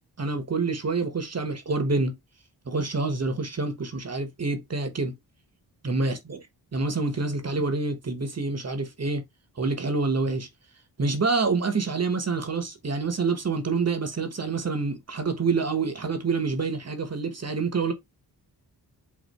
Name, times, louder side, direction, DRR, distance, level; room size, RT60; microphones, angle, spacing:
voice 1, 0.2-2.2 2.7-5.1 5.8-6.4 6.7-9.2 9.6-10.5 11.0-17.9, right 4 dB, 40° right, 1.3 m, -27 dB
5.3 x 2.9 x 3.1 m
cardioid pair, 75°, 40 cm